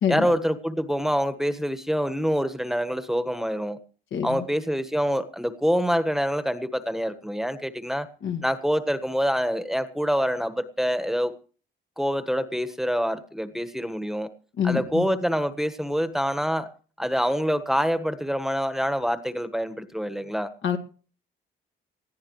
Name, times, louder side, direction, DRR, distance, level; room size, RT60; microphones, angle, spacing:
voice 1, 0.1-3.8 4.2-8.1 8.4-11.3 12.0-14.3 14.6-16.7 17.0-20.5, equal, ahead, 11 dB, 1.4 m, -26 dB
voice 2, 4.1-4.5 8.2-8.4 14.6-15.1 20.6-20.8, left 8 dB, 75° left, 4 dB, 2.3 m, -26 dB
20.0 x 14.5 x 3.2 m, 0.40 s
cardioid pair, 90°, 20 cm